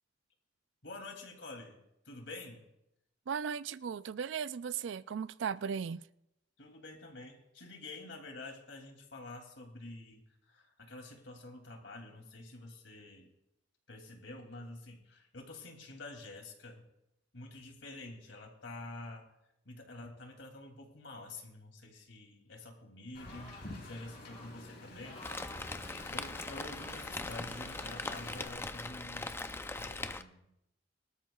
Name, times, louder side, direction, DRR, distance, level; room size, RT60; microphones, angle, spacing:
voice 1, 0.8-2.6 6.6-13.3 13.9-16.9 17.3-19.3 19.6-25.2 26.1-30.5, left 2 dB, 75° left, 2.7 m, -48 dB
voice 2, 3.3-6.0, right 7 dB, 70° right, 0.4 m, -37 dB
Wind, 23.1-28.5, left 2 dB, 60° left, 3.6 m, -49 dB
sound 1, 23.2-23.7 24.2-24.5 25.0-25.6 26.4-27.0 27.5-28.2 29.0-29.1, left 2 dB, 35° left, 5.2 m, -53 dB
Rain, 25.2-30.2, left 2 dB, 15° left, 0.5 m, -41 dB
24.0 x 13.0 x 2.3 m
head